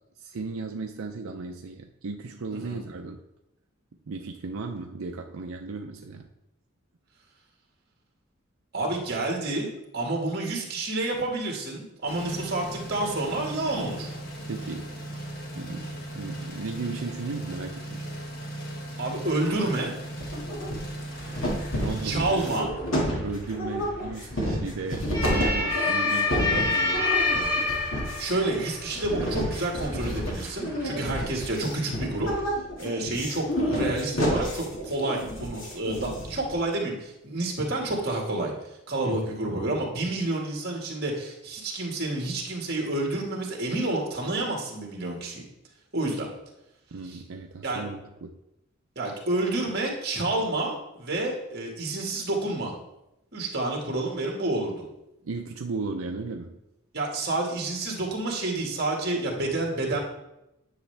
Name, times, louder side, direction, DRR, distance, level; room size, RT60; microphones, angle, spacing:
voice 1, 0.2-3.2 4.1-6.3 14.5-15.0 15.6-18.0 21.7-27.1 30.6-31.2 39.0-39.8 46.9-48.3 55.2-56.6, right 3 dB, 80° right, 3 dB, 0.6 m, -36 dB
voice 2, 2.5-2.8 8.7-14.1 19.0-19.9 22.0-22.7 28.2-32.3 32.8-38.5 38.9-45.4 45.9-46.3 47.1-47.2 47.6-47.8 48.9-52.7 53.3-54.8 56.9-60.0, right 2 dB, 50° right, -1 dB, 1.8 m, -29 dB
sound 1, 12.1-22.6, right 1 dB, 45° left, 1.5 m, -37 dB
sound 2, 19.5-19.9 20.2-21.0 21.4-36.5, equal, 75° left, 2.1 m, -30 dB
sound 3, 21.1-32.4, left 3 dB, 10° right, 2.5 m, -30 dB
9.7 x 6.5 x 3.4 m, 0.89 s
head